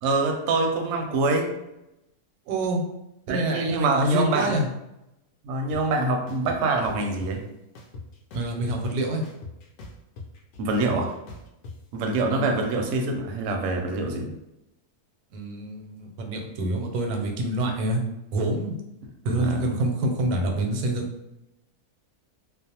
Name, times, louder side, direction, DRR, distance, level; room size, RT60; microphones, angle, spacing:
voice 1, 0.0-1.5 3.3-4.6 5.4-7.4 10.6-11.1 11.9-14.3 19.3-19.6, right 2 dB, 70° right, 2 dB, 0.8 m, -25 dB
voice 2, 2.5-2.8 3.3-4.7 8.3-9.2 12.3-12.6 15.3-18.0 18.3-18.8 19.2-21.1, right 1 dB, 85° right, 2 dB, 1.1 m, -26 dB
sound 1, 5.7-5.8 6.3-7.3 7.7-8.9 9.2-11.7, left 3 dB, 65° left, 0.7 m, -41 dB
2.5 x 2.1 x 2.8 m, 0.87 s
omnidirectional pair, 1.6 m